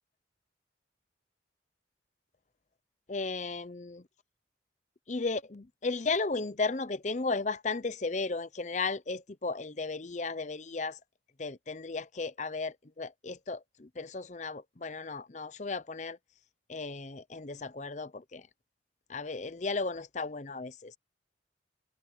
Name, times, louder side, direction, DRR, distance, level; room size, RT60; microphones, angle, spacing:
voice 1, 3.1-4.0 5.1-11.0 11.4-16.2 16.7-18.5 19.1-21.0, left 3 dB, 40° left, 0.7 m, -35 dB
head